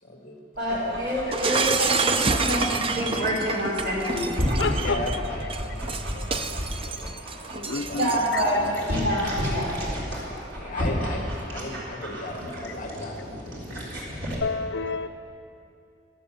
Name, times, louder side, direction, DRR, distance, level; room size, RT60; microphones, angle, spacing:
voice 1, 0.0-0.4 0.7-1.0 1.4-1.7 4.8-7.2 7.5-8.6 10.4-13.3, left 2 dB, 45° left, 1 dB, 2.0 m, -36 dB
Dog, 0.5-14.3, equal, 80° right, 3.8 m, -33 dB
voice 2, 0.6-4.3 7.9-9.8 10.5-10.6, equal, 55° right, -5 dB, 4.9 m, -27 dB
Shatter, 1.3-8.7, right 4 dB, 30° right, 0.5 m, -28 dB
voice 3, 4.6-5.0 7.6-8.4 14.4-15.1, left 4 dB, 60° left, 9 dB, 0.6 m, -29 dB
14.5 x 12.5 x 6.8 m, 2.6 s
head